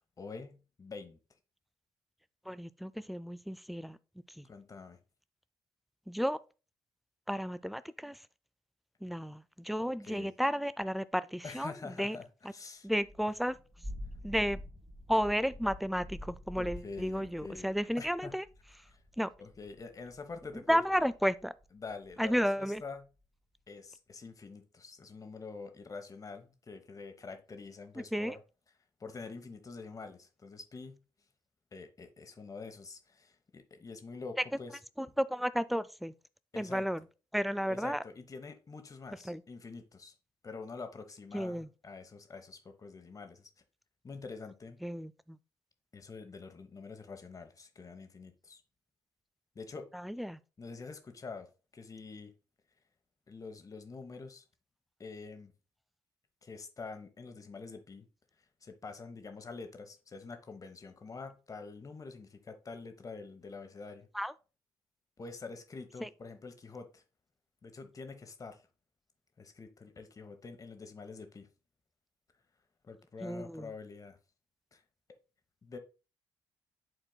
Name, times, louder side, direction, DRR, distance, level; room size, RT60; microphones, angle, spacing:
voice 1, 0.2-1.2 4.4-5.0 10.0-10.3 11.4-12.9 16.6-17.7 18.0-18.4 18.9-19.0 19.4-21.1 21.7-23.1 23.7-28.4 29.0-31.0 31.7-34.8 36.5-36.8 37.7-40.1 40.4-43.5 44.0-44.8 45.9-48.6 49.5-49.9 50.6-51.5 51.7-52.3 53.3-54.4 55.0-55.5 56.4-58.1 58.6-64.1 65.2-67.0 67.6-68.6 69.4-71.5 72.8-74.2 74.7-74.8 75.6-75.8, left 4 dB, 30° left, 1.1 m, -46 dB
voice 2, 2.5-4.0 4.4-4.5 6.1-6.4 7.3-8.2 9.0-12.2 12.8-13.6 14.2-14.6 15.1-18.4 19.2-19.3 20.7-21.5 22.2-22.8 28.0-28.3 35.0-36.1 36.6-37.0 37.3-38.0 39.3-39.4 41.3-41.7 44.8-45.4 49.9-50.4 64.1-64.3 66.0-66.1 73.2-73.7, equal, ahead, 0.3 m, -32 dB
Thunder / Rain, 12.9-22.4, left 1 dB, 30° right, 2.3 m, -48 dB
11.0 x 4.3 x 2.2 m
figure-of-eight pair, 40°, 11 cm